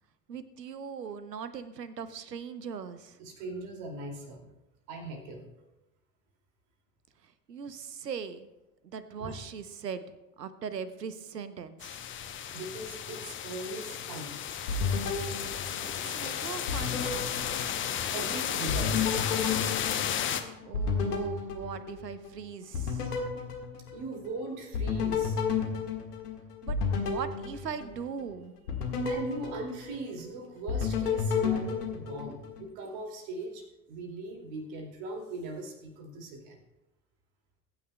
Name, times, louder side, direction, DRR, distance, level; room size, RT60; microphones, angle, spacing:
voice 1, 0.3-3.2 7.2-8.5 8.8-10.0 10.4-12.0 16.0-17.3 20.6-23.2 26.6-28.5, right 6 dB, 80° right, 13 dB, 0.9 m, -40 dB
voice 2, 3.2-4.5 4.9-5.5 9.2-9.4 12.5-14.4 18.1-19.2 23.9-25.4 28.8-36.6, right 2 dB, 50° right, 2 dB, 2.6 m, -40 dB
sound 1, 11.8-20.4, left 9 dB, 25° left, 0.8 m, -33 dB
sound 2, 14.7-16.3 16.7-18.3 18.7-22.3 22.7-24.3 24.7-28.2 28.7-30.3 30.7-32.6, left 5 dB, 65° left, 1.8 m, -32 dB
20.5 x 9.5 x 2.2 m, 0.98 s
figure-of-eight pair, 75°, 48 cm